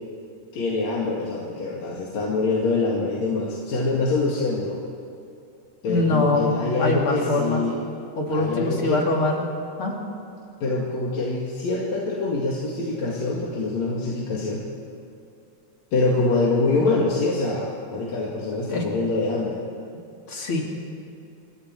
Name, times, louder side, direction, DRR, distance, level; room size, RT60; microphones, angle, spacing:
voice 1, 0.5-4.8 5.8-7.8 8.3-9.0 10.6-14.6 15.9-19.6, left 3 dB, 60° left, -3 dB, 3.2 m, -25 dB
voice 2, 5.9-7.6 8.2-9.5 9.8-10.0 18.7-18.8 20.3-20.6, left 2 dB, 45° left, -1 dB, 3.4 m, -23 dB
27.0 x 22.5 x 4.5 m, 2.6 s
omnidirectional pair, 3.6 m